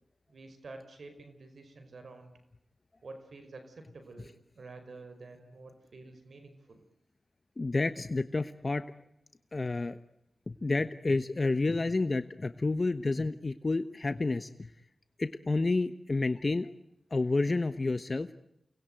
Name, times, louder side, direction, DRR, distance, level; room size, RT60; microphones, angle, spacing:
voice 1, 0.3-2.3 3.0-6.8, right 3 dB, 80° right, 7 dB, 5.3 m, -49 dB
voice 2, 7.6-8.8 9.5-10.0 10.5-14.7 15.2-16.7 17.1-18.3, left 3 dB, 40° left, 11 dB, 1.2 m, -30 dB
29.5 x 20.5 x 9.3 m, 0.82 s
wide cardioid pair, 80°, 0 cm